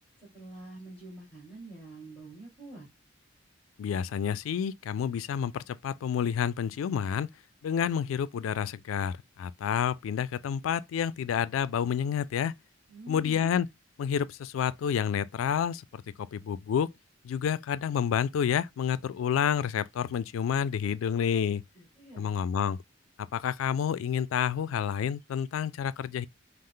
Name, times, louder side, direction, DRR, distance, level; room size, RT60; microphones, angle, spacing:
voice 1, 0.2-2.9 12.9-13.5 21.7-22.3, right 2 dB, 5° left, 1.8 m, -46 dB
voice 2, 3.8-7.3 7.6-12.5 13.1-13.7 14.0-16.9 17.2-21.6 22.2-22.8 23.3-26.3, left 8 dB, 85° left, 0.3 m, -29 dB
5.3 x 2.0 x 3.7 m
head